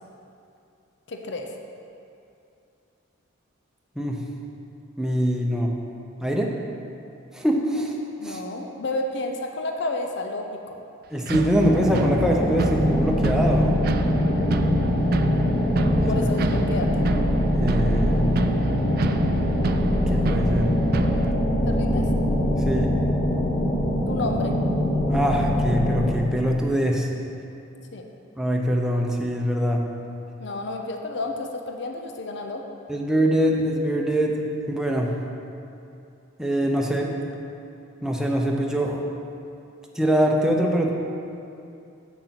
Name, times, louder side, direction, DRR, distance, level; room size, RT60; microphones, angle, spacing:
voice 1, 1.1-1.5 8.2-10.8 16.1-17.1 21.6-22.1 24.1-24.6 27.9-28.0 30.4-32.6, left 2 dB, 60° left, 3 dB, 0.6 m, -31 dB
voice 2, 5.0-5.7 6.2-6.5 7.3-7.9 8.2-8.4 11.1-13.8 16.0-16.1 17.6-18.2 20.1-20.7 22.6-22.9 25.1-27.1 28.4-29.8 32.9-34.4 34.7-35.1 36.4-37.1 38.0-39.0 40.0-40.9, equal, 5° right, -1 dB, 0.7 m, -23 dB
sound 1, 11.3-21.3, right 3 dB, 50° right, 0.4 m, -29 dB
sound 2, 11.6-26.1, left 1 dB, 30° left, 1.1 m, -23 dB
8.1 x 6.5 x 5.8 m, 2.6 s
head